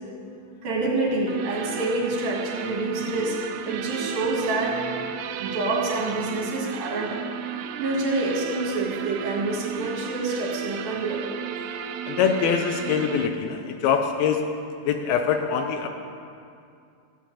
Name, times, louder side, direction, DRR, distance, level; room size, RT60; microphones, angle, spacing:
voice 1, 0.6-3.4 3.7-4.8 5.4-7.2 7.8-11.2, right 2 dB, 60° right, -3 dB, 3.6 m, -27 dB
sound 1, 1.3-13.3, right 8 dB, 80° right, 2.7 m, -33 dB
voice 2, 11.8-14.4 14.8-15.9, left 7 dB, 80° left, 6 dB, 2.2 m, -24 dB
15.0 x 7.5 x 8.5 m, 2.4 s
omnidirectional pair, 5.0 m